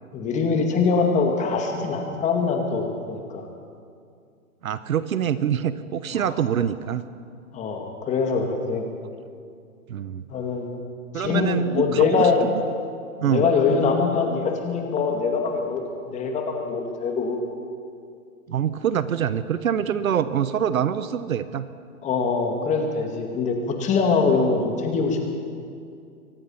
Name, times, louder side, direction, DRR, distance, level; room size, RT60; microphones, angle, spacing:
voice 1, 0.1-3.5 6.1-6.3 7.5-8.8 10.3-10.7 11.1-12.4 13.2-17.4 22.0-25.2, left 5 dB, 15° left, 3 dB, 2.2 m, -23 dB
voice 2, 4.6-7.0 9.9-10.2 11.1-12.6 13.2-14.0 18.5-21.7, right 9 dB, 70° right, 13 dB, 1.1 m, -25 dB
23.5 x 19.5 x 5.7 m, 2.3 s
hypercardioid pair, 150°, 43 cm